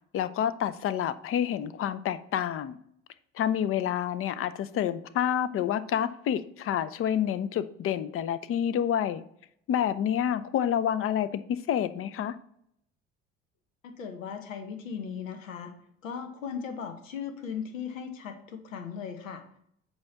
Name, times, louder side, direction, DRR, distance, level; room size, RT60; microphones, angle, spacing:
voice 1, 0.1-2.8 3.4-9.2 9.7-12.3, left 9 dB, 35° left, 14 dB, 0.6 m, -28 dB
voice 2, 13.8-15.7 16.0-19.4, left 7 dB, 75° left, 7 dB, 1.0 m, -37 dB
8.6 x 3.0 x 5.7 m, 0.69 s
figure-of-eight pair, 55°, 39 cm